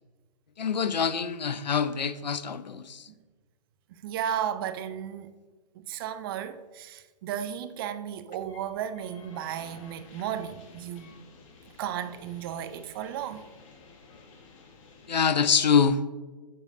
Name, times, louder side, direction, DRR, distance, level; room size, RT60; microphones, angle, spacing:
voice 1, 0.6-3.1 15.1-16.1, left 6 dB, 85° left, 0.5 m, -25 dB
voice 2, 4.0-5.3 5.7-11.1 11.8-13.5, right 9 dB, 35° right, 0.4 m, -34 dB
sound 1, 8.4-15.1, left 4 dB, 50° left, 1.3 m, -53 dB
7.5 x 6.5 x 2.6 m
figure-of-eight pair, 125°, 21 cm